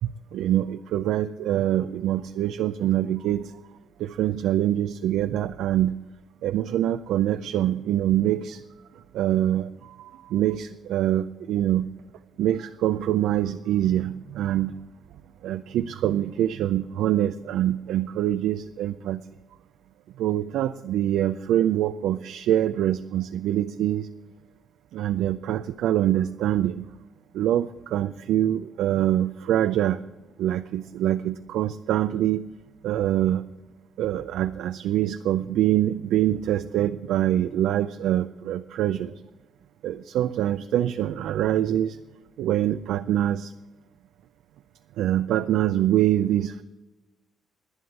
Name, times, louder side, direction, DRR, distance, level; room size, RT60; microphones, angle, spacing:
voice 1, 0.0-3.6 4.0-6.0 6.4-8.6 9.1-11.9 12.4-14.8 15.4-19.2 20.2-24.1 24.9-26.9 27.3-30.0 30.4-32.5 32.8-33.4 34.0-39.1 39.8-42.0 42.4-43.5 45.0-46.6, right 12 dB, 85° right, 10 dB, 0.4 m, -24 dB
11.0 x 9.6 x 8.5 m, 1.1 s
cardioid pair, 90°, 0 cm